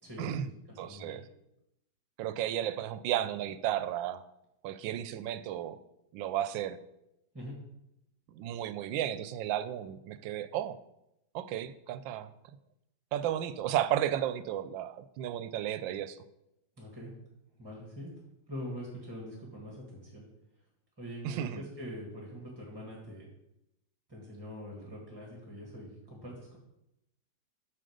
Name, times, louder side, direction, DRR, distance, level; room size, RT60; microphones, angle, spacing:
voice 1, 0.0-0.4 0.7-1.2 7.3-7.6 16.8-17.1 17.6-18.1 18.5-20.2 21.0-23.3 24.1-26.6, equal, 15° right, -2 dB, 1.7 m, -43 dB
voice 2, 0.8-1.2 2.2-4.2 4.6-5.8 6.1-6.8 8.3-10.8 11.3-12.3 13.1-16.2 21.2-21.6, right 11 dB, 90° right, 13 dB, 1.3 m, -33 dB
7.7 x 6.4 x 5.2 m, 0.85 s
omnidirectional pair, 2.0 m